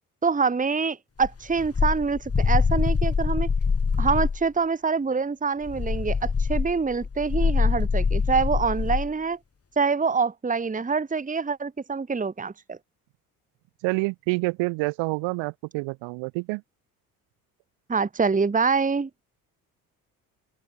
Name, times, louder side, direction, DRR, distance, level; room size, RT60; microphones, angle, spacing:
voice 1, 0.2-3.5 4.0-9.4 9.8-12.8 17.9-19.1, right 5 dB, 15° right, 1.4 m, -25 dB
sound 1, 1.2-4.4 5.6-9.1, left 5 dB, 30° left, 6.8 m, -24 dB
voice 2, 13.8-16.6, right 26 dB, 75° right, 3.0 m, -27 dB
open air
hypercardioid pair, 60°, 45 cm